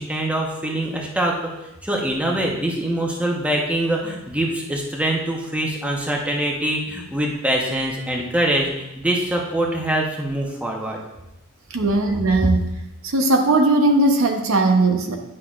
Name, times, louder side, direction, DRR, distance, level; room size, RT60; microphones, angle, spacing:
voice 1, 0.0-1.3 1.8-11.0, right 1 dB, 5° right, -1 dB, 0.9 m, -24 dB
voice 2, 11.7-12.7 13.0-15.2, right 2 dB, 75° right, 3 dB, 0.8 m, -18 dB
9.8 x 5.7 x 2.5 m, 0.92 s
head